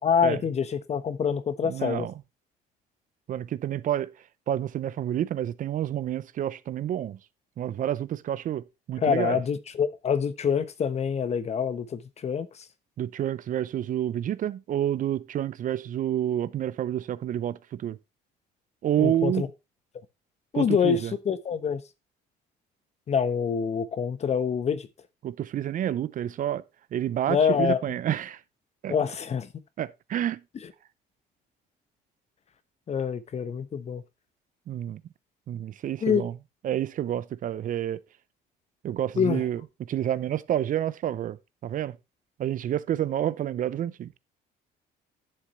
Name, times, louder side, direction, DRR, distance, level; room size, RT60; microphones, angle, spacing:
voice 1, 0.0-2.1 9.0-12.6 19.0-19.5 20.5-21.8 23.1-24.9 27.3-27.8 28.9-29.5 32.9-34.0 36.0-36.2 39.2-39.4, left 7 dB, 40° left, 1.1 m, -26 dB
voice 2, 1.6-2.1 3.3-4.1 4.5-7.2 7.6-9.4 13.0-18.0 18.8-19.4 20.5-21.1 25.2-26.6 26.9-28.4 28.8-28.9 29.8-30.4 34.7-35.0 35.5-36.3 36.6-38.0 38.8-39.6 39.9-42.0 42.4-44.2, right 11 dB, 50° right, 0.7 m, -29 dB
11.0 x 7.3 x 3.2 m
cardioid pair, 110°, 17 cm